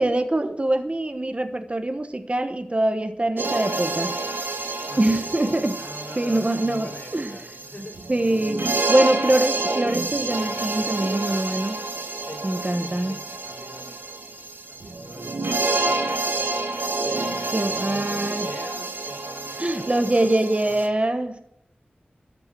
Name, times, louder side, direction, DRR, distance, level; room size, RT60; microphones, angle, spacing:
voice 1, 0.0-4.2 5.0-5.8 6.2-7.4 8.1-11.7 12.4-13.2 17.5-18.5 19.6-21.4, right 1 dB, 35° right, 7 dB, 1.2 m, -24 dB
sound 1, 3.4-20.9, right 2 dB, 70° right, 1.6 m, -29 dB
voice 2, 4.9-8.0 11.3-11.5 12.2-12.4 12.7-14.0 14.7-16.6 17.0-20.3 20.6-20.9, left 1 dB, 50° left, 0 dB, 4.9 m, -43 dB
13.0 x 6.1 x 7.7 m, 0.76 s
wide cardioid pair, 65°, 4 cm